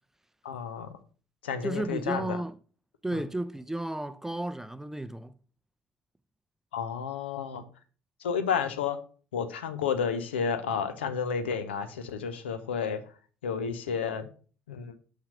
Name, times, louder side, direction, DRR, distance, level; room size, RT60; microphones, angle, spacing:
voice 1, 0.4-0.9 1.4-2.4 3.1-3.2 6.7-7.6 8.2-9.0 9.3-13.0 13.4-14.3 14.7-14.9, left 6 dB, 75° left, 0.7 m, -31 dB
voice 2, 1.6-2.5 3.0-5.3, right 1 dB, 5° right, 0.5 m, -33 dB
5.8 x 5.8 x 4.9 m
figure-of-eight pair, 55°, 6 cm